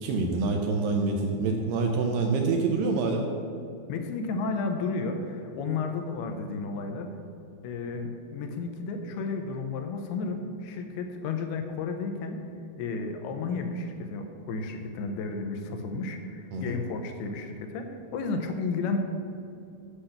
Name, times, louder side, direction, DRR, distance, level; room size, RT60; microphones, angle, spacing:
voice 1, 0.0-3.3 16.5-16.8, right 3 dB, 75° right, 2 dB, 2.1 m, -26 dB
voice 2, 3.9-7.1 7.6-12.4 12.8-19.0, left 4 dB, 90° left, 5 dB, 2.8 m, -32 dB
8.3 x 5.8 x 6.6 m, 2.5 s
omnidirectional pair, 4.5 m